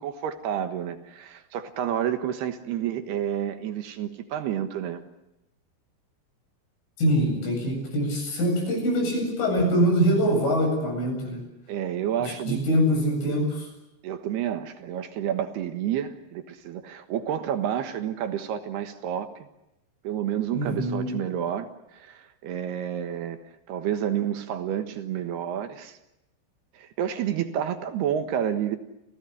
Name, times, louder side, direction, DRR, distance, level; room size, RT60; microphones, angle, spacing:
voice 1, 0.0-5.0 11.7-12.6 14.0-19.3 20.0-21.7 21.9-23.4 23.7-26.0 26.7-28.8, right 10 dB, 65° right, 8 dB, 3.0 m, -29 dB
voice 2, 7.0-11.4 12.2-13.7 20.5-21.1, equal, 70° left, 2 dB, 10.5 m, -24 dB
29.0 x 17.5 x 10.0 m, 0.89 s
omnidirectional pair, 5.7 m